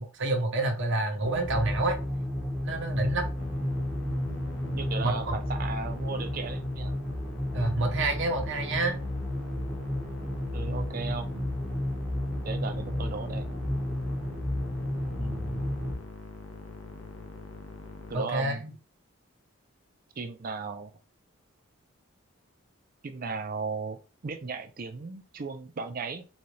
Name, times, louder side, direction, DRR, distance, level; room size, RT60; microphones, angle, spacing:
voice 1, 0.0-2.0 2.6-3.3 5.0-5.4 7.5-9.0 18.1-18.7, right 2 dB, 60° right, 4 dB, 0.9 m, -28 dB
sound 1, 1.2-15.9, left 1 dB, ahead, 0.7 m, -32 dB
Musical instrument, 3.4-18.2, left 3 dB, 65° left, 0.7 m, -45 dB
voice 2, 4.0-4.4 4.7-7.0 10.5-11.4 12.4-13.6 15.2-15.7 18.1-18.6 20.2-20.9 23.0-26.2, right 4 dB, 40° right, 7 dB, 0.5 m, -36 dB
4.0 x 2.4 x 3.1 m, 0.33 s
head